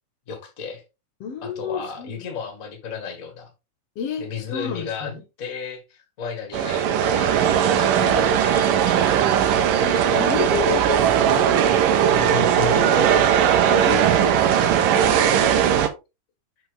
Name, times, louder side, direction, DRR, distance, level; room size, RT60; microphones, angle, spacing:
voice 1, 0.3-0.8 1.4-3.5 4.2-5.1 5.4-9.7 12.1-13.1, left 6 dB, 30° left, 1.8 m, -33 dB
voice 2, 1.2-2.2 4.0-4.3 4.5-5.2 9.8-11.7 13.7-15.6, left 6 dB, 55° left, 2.1 m, -31 dB
sound 1, 6.5-15.9, right 9 dB, 85° right, 2.7 m, -18 dB
7.3 x 5.7 x 3.4 m
omnidirectional pair, 3.8 m